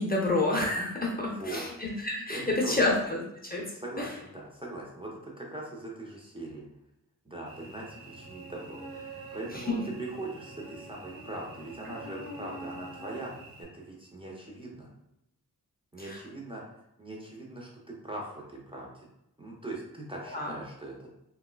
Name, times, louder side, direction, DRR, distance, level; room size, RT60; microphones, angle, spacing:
voice 1, 0.0-3.2 3.5-3.6 4.0-4.1 9.5-9.6 16.0-16.2 20.3-20.5, left 2 dB, 25° left, -2 dB, 0.6 m, -29 dB
voice 2, 1.2-1.7 2.3-2.7 3.7-6.7 7.2-14.9 15.9-16.6 17.0-19.1 19.4-21.1, right 2 dB, 15° right, -3 dB, 0.6 m, -41 dB
Cricket / Buzz, 7.5-13.6, right 2 dB, 65° right, 1.0 m, -45 dB
3.5 x 2.2 x 2.3 m, 0.83 s
wide cardioid pair, 70°, 36 cm